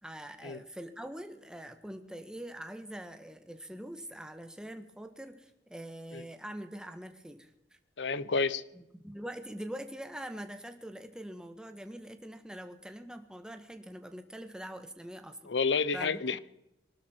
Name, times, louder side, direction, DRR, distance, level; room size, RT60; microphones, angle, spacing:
voice 1, 0.0-7.5 8.7-15.5 15.9-16.4, right 1 dB, 5° right, 7 dB, 1.5 m, -44 dB
voice 2, 8.0-8.6 15.5-16.4, left 4 dB, 80° left, 16 dB, 0.9 m, -29 dB
24.0 x 12.5 x 4.6 m, 0.89 s
head